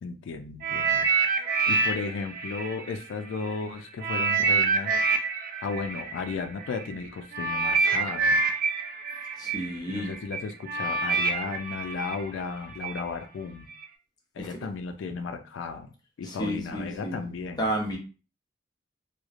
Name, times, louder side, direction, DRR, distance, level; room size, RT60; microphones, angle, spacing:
voice 1, 0.0-5.0 5.6-8.4 9.9-13.7 14.4-15.9 16.2-17.7, left 4 dB, 80° left, 6 dB, 0.3 m, -35 dB
sound 1, 0.6-3.5 4.0-13.0 13.7-13.8, right 4 dB, 45° right, 0.4 m, -27 dB
voice 2, 9.4-10.1 14.4-14.6 16.2-17.3 17.6-18.0, right 1 dB, 20° left, 0 dB, 0.6 m, -31 dB
3.0 x 2.0 x 2.4 m, 0.34 s
head